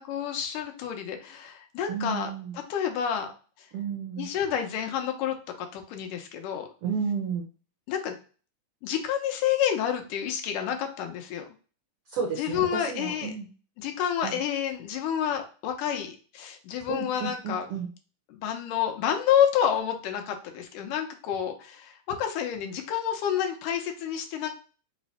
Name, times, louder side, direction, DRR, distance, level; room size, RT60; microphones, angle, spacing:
voice 1, 0.1-2.3 2.7-3.3 3.6-3.7 4.2-6.7 7.9-8.2 8.8-11.5 12.4-13.3 13.8-17.7 18.3-24.5, left 9 dB, 85° left, 5 dB, 2.3 m, -29 dB
voice 2, 1.9-2.5 3.7-4.3 6.8-7.5 12.1-13.5 14.2-14.4 16.9-17.9, right 6 dB, 85° right, 1 dB, 1.2 m, -32 dB
5.6 x 2.1 x 4.0 m, 0.37 s
omnidirectional pair, 3.6 m